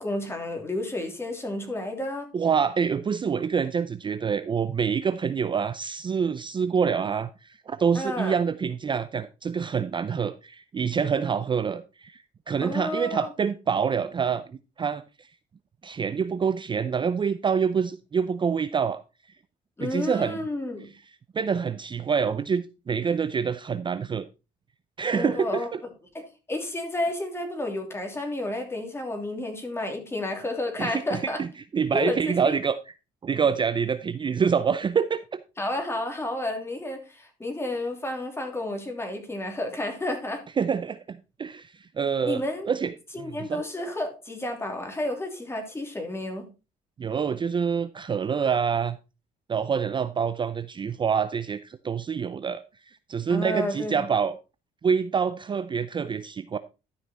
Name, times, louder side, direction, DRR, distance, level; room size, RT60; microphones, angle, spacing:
voice 1, 0.0-2.3 7.9-8.4 12.6-13.3 19.8-20.9 25.1-25.9 26.1-31.4 31.9-32.6 35.6-40.4 42.2-42.7 43.1-46.5 53.3-54.1, left 1 dB, 15° left, 3.0 m, -31 dB
voice 2, 2.3-14.4 14.8-15.3 15.8-19.0 19.8-20.4 21.3-24.3 25.0-25.8 30.8-31.5 31.7-32.8 33.2-35.4 40.6-43.6 47.0-49.0 49.5-54.4 54.8-56.6, right 6 dB, 30° right, 0.5 m, -26 dB
12.5 x 5.8 x 4.2 m
cardioid pair, 110°, 17 cm